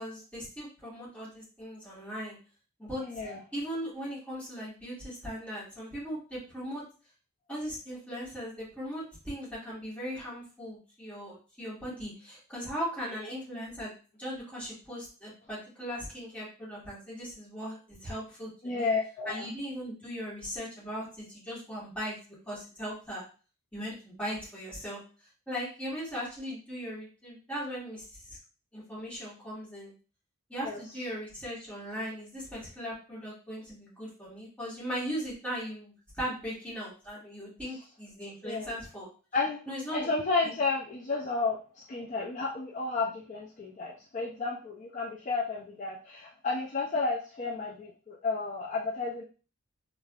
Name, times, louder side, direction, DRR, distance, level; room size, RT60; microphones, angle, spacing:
voice 1, 0.0-2.4 2.8-3.2 3.5-6.8 7.5-13.9 14.2-18.9 19.2-22.2 22.5-23.2 23.7-25.0 25.5-28.4 28.7-29.9 30.5-39.1 39.7-40.1 40.4-40.5, equal, 5° left, -9 dB, 1.4 m, -38 dB
voice 2, 3.0-3.4 18.6-19.5 30.6-30.8 38.4-38.7 39.3-39.6 39.9-49.2, left 3 dB, 35° left, -2 dB, 0.3 m, -32 dB
3.3 x 2.4 x 2.3 m, 0.36 s
head